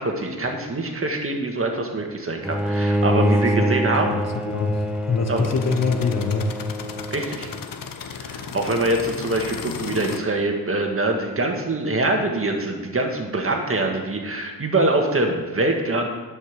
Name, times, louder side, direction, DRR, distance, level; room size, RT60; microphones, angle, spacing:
voice 1, 0.0-4.2 5.3-5.4 7.1-7.5 8.2-16.1, right 2 dB, 35° right, 2 dB, 1.8 m, -24 dB
sound 1, 2.4-10.2, left 6 dB, 65° left, 0.9 m, -37 dB
Bowed string instrument, 2.4-7.6, right 1 dB, 5° right, 0.6 m, -25 dB
voice 2, 3.1-6.6, left 4 dB, 45° left, 6 dB, 1.1 m, -25 dB
10.5 x 5.4 x 6.7 m, 1.4 s
cardioid pair, 85°, 36 cm